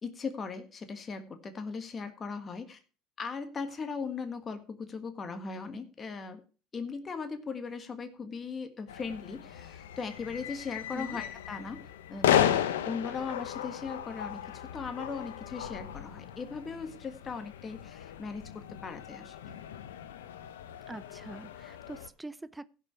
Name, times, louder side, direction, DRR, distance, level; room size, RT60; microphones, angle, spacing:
voice 1, 0.0-2.8 3.2-6.4 6.7-19.5, left 5 dB, 35° left, 1.6 m, -39 dB
sound 1, 8.9-22.1, left 10 dB, 85° left, 0.8 m, -34 dB
voice 2, 20.9-22.7, right 2 dB, 10° right, 0.6 m, -43 dB
15.5 x 5.6 x 4.6 m
hypercardioid pair, 80°, 0 cm